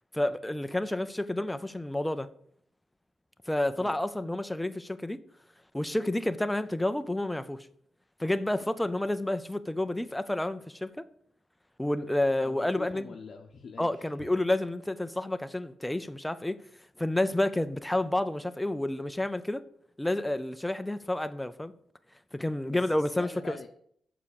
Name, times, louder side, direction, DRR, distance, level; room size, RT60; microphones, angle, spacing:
voice 1, 0.1-2.3 3.5-5.2 5.7-7.7 8.2-11.1 11.8-13.1 13.8-16.6 17.0-19.6 20.0-21.7 22.3-23.6, left 1 dB, 5° left, 0.5 m, -30 dB
voice 2, 12.4-14.3 22.7-23.7, left 5 dB, 50° left, 0.8 m, -45 dB
7.3 x 5.8 x 6.8 m
cardioid pair, 130°, 0 cm